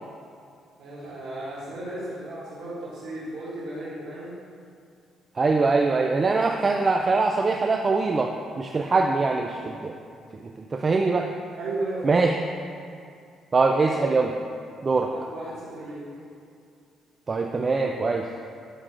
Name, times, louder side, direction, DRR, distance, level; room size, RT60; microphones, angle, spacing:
voice 1, 0.8-4.4 11.5-12.2 13.8-14.0 15.1-16.0, right 2 dB, 85° right, -11 dB, 1.8 m, -35 dB
voice 2, 5.4-9.9 10.6-11.3 12.0-12.4 13.5-14.3 14.8-15.1 17.3-18.3, right 3 dB, 30° right, 3 dB, 0.3 m, -23 dB
10.0 x 6.2 x 2.5 m, 2.4 s
cardioid pair, 115°, 0 cm